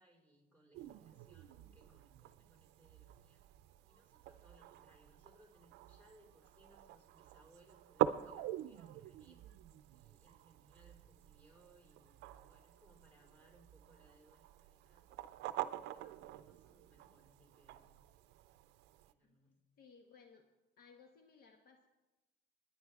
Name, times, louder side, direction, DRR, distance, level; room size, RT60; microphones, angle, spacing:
voice 1, 0.0-3.5 3.8-9.5 9.9-15.1 15.6-17.9 19.0-19.5, right 1 dB, 10° left, 0 dB, 4.5 m, -68 dB
sound 1, 0.7-19.1, right 13 dB, 85° right, 0.5 m, -45 dB
voice 2, 19.2-20.5 20.8-21.9, left 5 dB, 60° left, 4 dB, 1.2 m, -62 dB
28.5 x 9.9 x 3.6 m, 1.1 s
cardioid pair, 110°, 17 cm